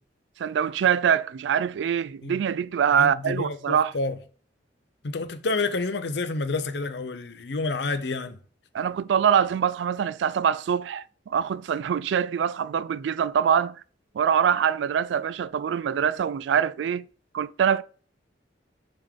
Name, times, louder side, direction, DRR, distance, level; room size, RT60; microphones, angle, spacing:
voice 1, 0.4-3.9 8.7-13.8 14.1-17.1 17.3-17.8, right 8 dB, 70° right, 0.3 m, -24 dB
voice 2, 2.9-4.2 5.0-8.4, left 3 dB, 65° left, 0.7 m, -29 dB
7.8 x 3.7 x 3.6 m
head